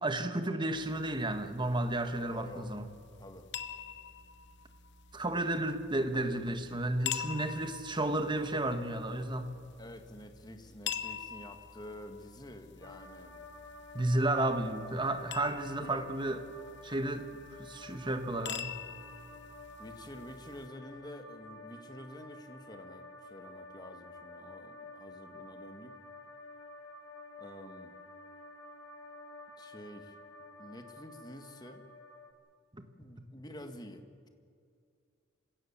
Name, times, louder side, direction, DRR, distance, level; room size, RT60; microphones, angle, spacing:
voice 1, 0.0-2.8 5.1-9.5 13.9-16.4 16.8-17.3 17.6-18.7 32.7-32.8, right 1 dB, 25° right, 8 dB, 1.4 m, -32 dB
sound 1, 0.7-20.7, left 9 dB, 60° left, 1.0 m, -46 dB
voice 2, 2.3-2.8 3.2-3.5 9.8-13.4 15.8-16.1 19.8-25.9 27.4-27.9 29.6-30.2 30.6-31.8 33.0-34.3, left 1 dB, 20° left, 7 dB, 1.7 m, -49 dB
sound 2, 12.8-32.3, left 2 dB, 85° left, 3.0 m, -51 dB
27.5 x 16.5 x 7.3 m, 2.3 s
head